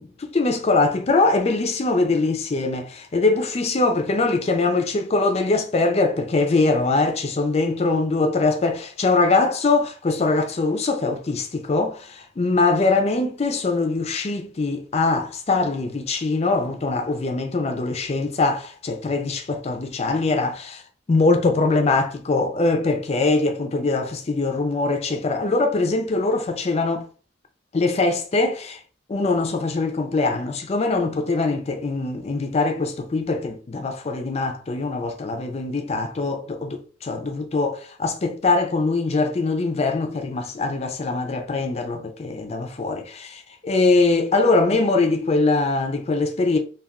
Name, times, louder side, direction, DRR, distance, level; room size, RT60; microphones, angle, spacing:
voice 1, 0.0-20.8 21.1-27.1 27.7-28.8 29.1-46.6, left 3 dB, 35° left, 0.4 m, -22 dB
2.3 x 2.2 x 3.5 m
head